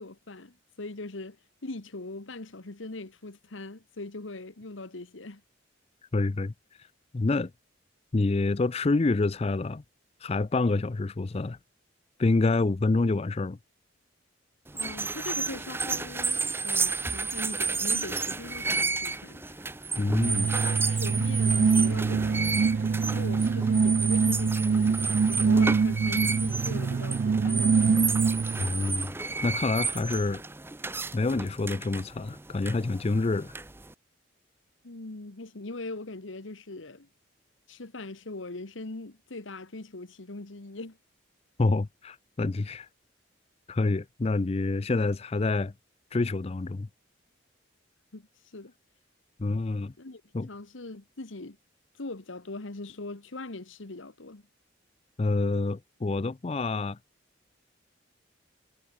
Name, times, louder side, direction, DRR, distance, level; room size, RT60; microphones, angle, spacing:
voice 1, 0.0-1.4 1.6-5.4 14.7-19.6 20.4-22.6 23.0-28.1 34.8-37.1 37.7-41.0 48.1-48.3 48.5-48.7 50.0-51.6 52.0-54.4, left 2 dB, 75° left, 1.4 m, -41 dB
voice 2, 6.1-6.5 7.1-7.5 8.1-9.8 10.2-11.6 12.2-13.6 20.0-20.6 28.6-29.1 29.4-30.4 31.1-33.5 41.6-42.9 43.7-45.7 46.1-46.9 49.4-49.9 50.3-50.5 55.2-57.0, left 3 dB, 30° left, 0.4 m, -27 dB
sound 1, 14.7-33.9, right 4 dB, 10° right, 0.7 m, -32 dB
sound 2, 20.1-28.7, right 5 dB, 45° right, 0.3 m, -25 dB
head